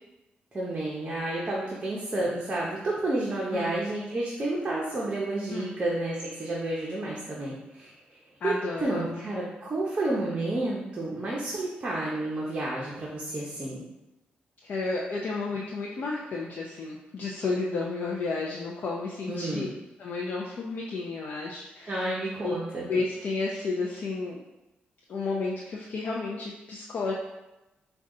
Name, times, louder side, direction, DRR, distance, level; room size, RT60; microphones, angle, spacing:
voice 1, 0.5-7.9 8.4-13.8 19.3-19.7 21.9-22.9, right 2 dB, 30° right, -5 dB, 0.8 m, -30 dB
voice 2, 8.4-9.3 14.6-19.7 20.0-22.1 22.4-22.6 22.9-24.4 25.1-27.1, left 3 dB, 55° left, -3 dB, 0.6 m, -32 dB
5.3 x 2.4 x 3.7 m, 0.99 s
cardioid pair, 125°, 4 cm